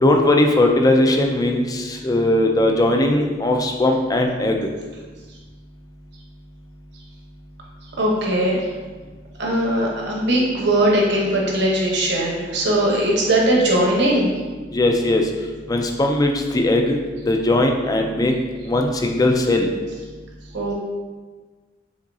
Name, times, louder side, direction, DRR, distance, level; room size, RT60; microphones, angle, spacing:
voice 1, 0.0-4.6 14.7-15.2 15.7-17.0 17.3-18.4 18.7-19.7, left 1 dB, 20° left, 3 dB, 0.4 m, -18 dB
voice 2, 8.0-8.6 9.4-14.3 20.5-20.7, right 1 dB, 60° right, -2 dB, 1.0 m, -19 dB
5.0 x 3.8 x 2.7 m, 1.3 s
head